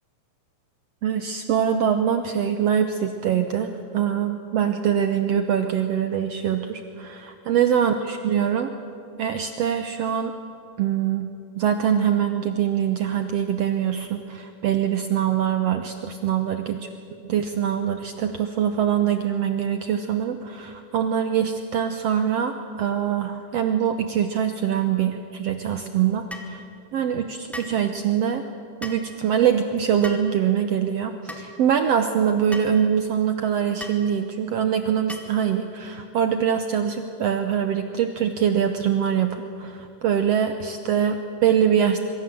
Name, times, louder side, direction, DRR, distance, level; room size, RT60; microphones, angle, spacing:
voice 1, 1.0-8.7 9.2-10.3 10.8-11.3 11.6-16.8 17.2-26.6 26.9-28.4 28.8-42.0, right 8 dB, 65° right, 7 dB, 1.9 m, -23 dB
sound 1, 26.3-26.5 27.5-27.8 28.8-29.1 30.0-30.3 31.3-31.5 32.5-32.7 33.8-34.0 35.1-35.4, left 1 dB, ahead, 1.5 m, -37 dB
26.0 x 24.0 x 7.7 m, 2.5 s
omnidirectional pair, 3.4 m